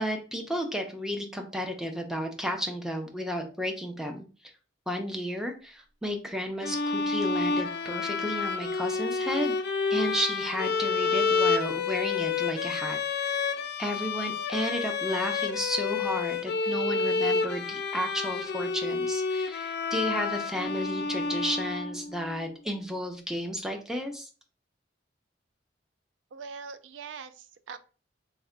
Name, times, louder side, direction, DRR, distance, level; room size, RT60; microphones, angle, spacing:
voice 1, 0.0-4.2 4.9-9.6 9.9-13.4 13.8-24.3, equal, 5° right, 3 dB, 0.5 m, -33 dB
sound 1, 6.6-22.3, left 4 dB, 60° left, 0.4 m, -29 dB
voice 2, 26.3-27.8, right 5 dB, 80° right, 12 dB, 0.3 m, -42 dB
3.3 x 2.1 x 3.7 m, 0.36 s
head